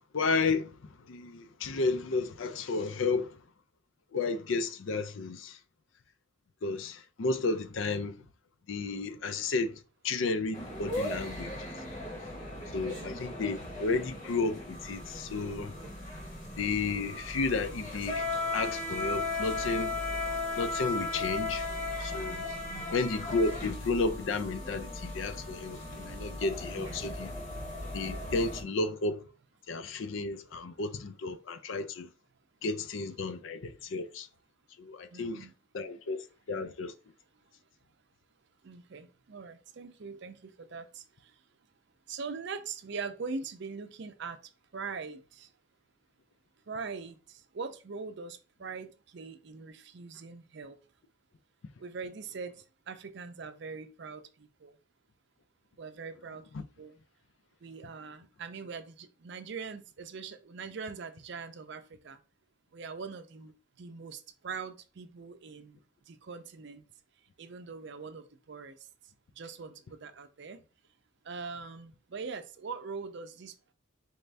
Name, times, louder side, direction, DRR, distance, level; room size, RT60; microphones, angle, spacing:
voice 1, 0.1-3.4 4.1-5.6 6.6-8.1 8.7-9.8 10.0-11.7 12.7-15.7 16.6-20.0 20.6-21.7 22.0-22.5 22.9-27.3 27.9-29.2 29.7-32.1 32.6-34.3 34.8-35.5 35.7-36.9, left 3 dB, 70° left, 0.5 m, -32 dB
sound 1, 10.5-28.6, left 2 dB, 40° left, 1.2 m, -37 dB
voice 2, 12.8-13.1 22.7-23.0 26.7-27.1 35.1-35.6 38.6-41.3 42.1-44.4 44.7-45.5 46.7-50.8 51.8-54.8 55.8-57.0 57.6-62.2 62.7-65.8 66.1-66.8 67.4-68.8 69.4-70.6 71.2-73.7, right 5 dB, 60° right, 0.5 m, -42 dB
4.2 x 2.6 x 3.3 m
head